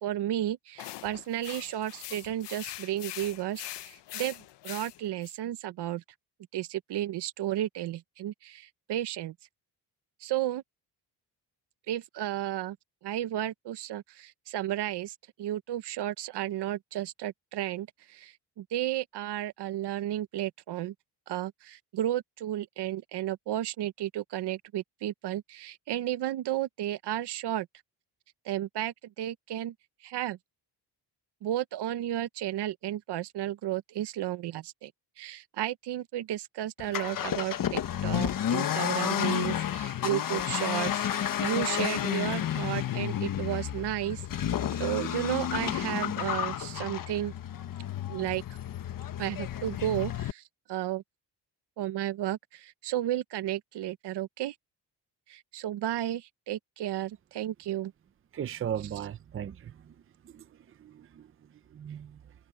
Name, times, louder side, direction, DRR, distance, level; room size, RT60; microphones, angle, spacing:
voice 1, 0.0-6.0 6.5-9.3 10.2-10.6 11.9-12.8 13.0-20.9 21.3-27.7 28.4-29.7 30.0-30.4 31.4-34.9 35.2-47.3 48.1-48.4 49.2-50.4 50.7-51.0 51.8-54.5 55.3-57.9, right 13 dB, 70° right, 0.9 m, -33 dB
sound 1, 0.8-5.3, left 14 dB, 85° left, 0.8 m, -43 dB
Accelerating revving vroom, 36.8-50.3, left 10 dB, 50° left, 1.2 m, -31 dB
voice 2, 58.3-59.7 60.3-60.4 60.8-61.3 61.7-62.2, right 9 dB, 30° right, 0.6 m, -36 dB
wide cardioid pair, 175°, 41 cm